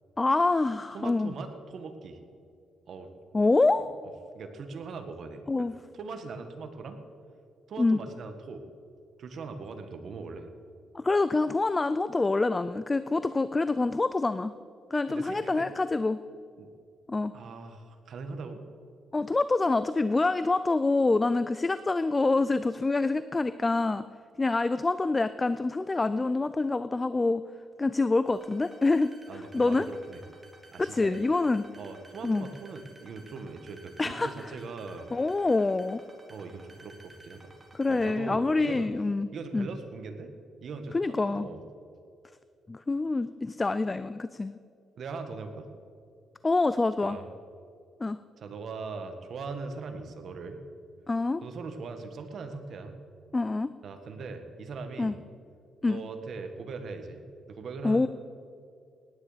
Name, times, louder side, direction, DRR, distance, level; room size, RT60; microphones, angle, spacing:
voice 1, 0.2-1.3 3.3-3.9 5.5-5.7 7.8-8.0 10.9-14.5 14.9-16.2 17.1-17.3 19.1-24.0 24.4-27.4 27.8-29.1 29.5-29.9 30.8-31.6 32.2-32.5 34.0-34.5 35.1-36.0 37.7-39.7 40.9-41.5 42.7-44.6 46.4-47.2 48.0-48.2 51.1-51.4 53.3-53.7 55.0-55.1 55.8-56.0 57.8-58.1, left 3 dB, 20° left, 13 dB, 0.4 m, -26 dB
voice 2, 0.9-2.2 2.9-3.1 4.3-5.7 5.9-7.0 7.7-8.6 9.2-10.5 15.1-15.7 16.6-16.7 17.3-18.6 29.3-30.2 30.7-31.2 31.8-35.1 36.3-37.5 37.9-38.9 39.3-40.3 40.6-41.0 41.2-41.6 45.0-45.7 47.0-47.3 48.4-50.6 51.4-53.0 53.8-55.2 55.9-58.1, right 4 dB, 60° right, 7 dB, 1.6 m, -40 dB
sound 1, 28.3-38.1, right 2 dB, 20° right, 2.8 m, -54 dB
18.5 x 9.7 x 5.1 m, 2.4 s
cardioid pair, 105°, 0 cm